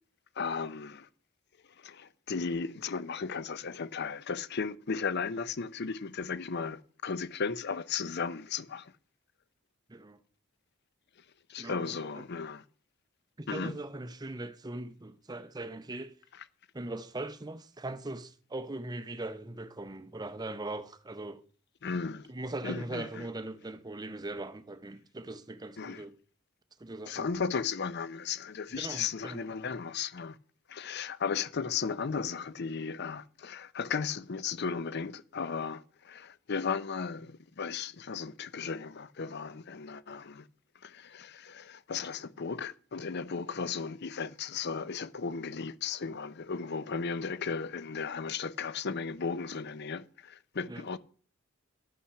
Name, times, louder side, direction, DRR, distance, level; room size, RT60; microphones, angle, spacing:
voice 1, 0.4-1.1 1.8-8.9 11.5-12.6 13.5-13.7 21.8-22.3 22.6-23.3 25.8-26.0 27.1-30.4 30.7-40.4 40.8-51.0, left 5 dB, 55° left, 0.6 m, -35 dB
voice 2, 11.6-12.3 13.4-16.1 16.7-21.4 22.3-26.1 26.8-27.3 28.7-29.5 50.7-50.8, right 2 dB, 20° right, 0.6 m, -40 dB
11.0 x 5.7 x 5.7 m
head